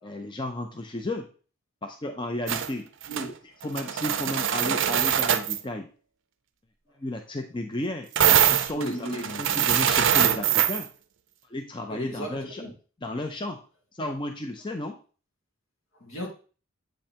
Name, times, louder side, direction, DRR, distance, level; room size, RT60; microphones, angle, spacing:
voice 1, 0.0-1.3 1.8-2.9 3.6-5.9 7.0-8.1 8.4-9.0 9.4-10.9 11.5-12.6 13.0-13.6 13.9-15.0, left 1 dB, 20° left, 0.5 m, -33 dB
sound 1, 2.5-2.7 3.0-3.3 3.6-5.6 8.2-10.8, right 9 dB, 60° right, 0.5 m, -23 dB
voice 2, 8.7-9.7 11.9-12.7 16.0-16.3, right 1 dB, 75° left, 2.1 m, -35 dB
7.7 x 5.2 x 2.9 m
head